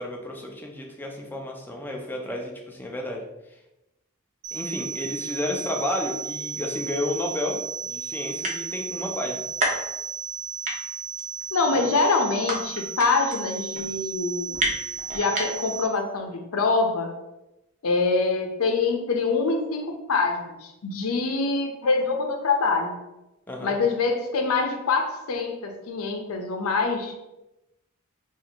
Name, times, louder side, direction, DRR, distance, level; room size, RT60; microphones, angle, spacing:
voice 1, 0.0-3.2 4.5-9.4 11.7-11.8 23.5-23.8, left 1 dB, 10° left, 0 dB, 0.5 m, -31 dB
sound 1, 4.4-15.9, right 7 dB, 85° right, 0.5 m, -34 dB
sound 2, 7.6-7.7 8.0-8.1 8.3-8.9 9.3-10.4 10.6-15.8, right 1 dB, 35° right, 0.8 m, -29 dB
voice 2, 11.5-14.7 15.1-17.1 17.8-23.0 23.6-27.1, left 4 dB, 85° left, 4 dB, 0.6 m, -25 dB
2.8 x 2.5 x 4.3 m, 0.94 s
head